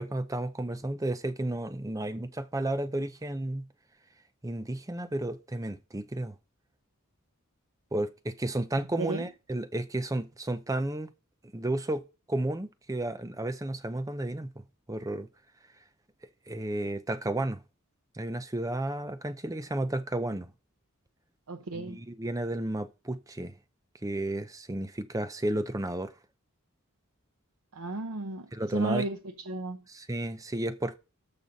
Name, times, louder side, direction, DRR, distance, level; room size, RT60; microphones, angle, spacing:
voice 1, 0.0-3.7 4.4-6.3 7.9-11.1 11.5-14.5 14.9-15.3 16.5-17.6 18.2-20.5 21.7-23.5 24.0-26.1 28.5-29.1 29.9-31.0, right 1 dB, 15° right, 0.6 m, -32 dB
voice 2, 21.5-22.0 27.8-29.2 29.5-29.8, right 2 dB, 85° right, 0.8 m, -33 dB
13.5 x 5.3 x 4.1 m
head